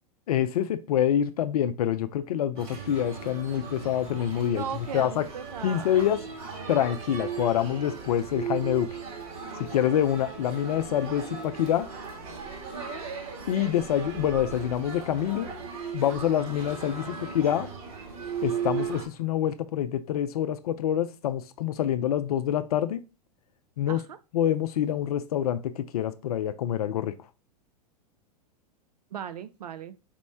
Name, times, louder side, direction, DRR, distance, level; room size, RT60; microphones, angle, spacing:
voice 1, 0.3-5.3 5.6-6.2 6.7-9.0 9.6-11.9 13.5-15.5 15.9-17.7 18.4-23.0 23.8-24.0 24.3-27.1, left 10 dB, 70° left, 11 dB, 0.4 m, -26 dB
sound 1, 2.6-19.0, right 6 dB, 60° right, 1.5 m, -37 dB
voice 2, 4.5-6.0 12.7-13.1 16.9-17.3 23.9-24.2 29.1-29.9, right 8 dB, 80° right, 13 dB, 0.4 m, -38 dB
4.3 x 2.1 x 4.3 m, 0.31 s
hypercardioid pair, 105°, 20 cm